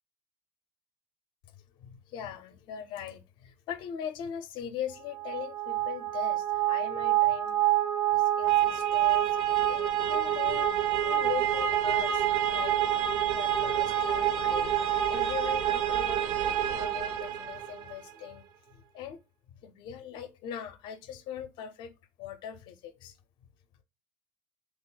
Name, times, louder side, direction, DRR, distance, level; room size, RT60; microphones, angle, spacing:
voice 1, 1.8-7.6 8.1-10.7 11.0-12.8 13.1-14.7 15.1-18.4 18.7-19.2 19.5-21.9 22.2-23.2, left 9 dB, 55° left, 0.5 m, -40 dB
sound 1, 5.1-17.9, right 11 dB, 55° right, 0.5 m, -27 dB
3.0 x 2.1 x 3.8 m
supercardioid pair, 115°, 10 cm